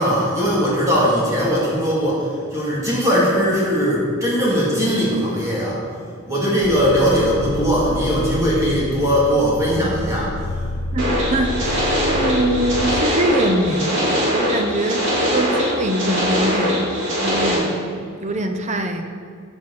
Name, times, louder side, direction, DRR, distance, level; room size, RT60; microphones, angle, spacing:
voice 1, 0.0-5.8 6.3-10.6, equal, 15° right, -7 dB, 2.6 m, -19 dB
sound 1, 6.6-13.0, left 2 dB, 85° left, 0.6 m, -29 dB
voice 2, 10.9-16.9 17.2-19.0, right 1 dB, 35° right, 6 dB, 0.7 m, -23 dB
sound 2, 11.0-17.6, equal, 65° right, 2.4 m, -21 dB
14.0 x 5.0 x 4.2 m, 2.2 s
head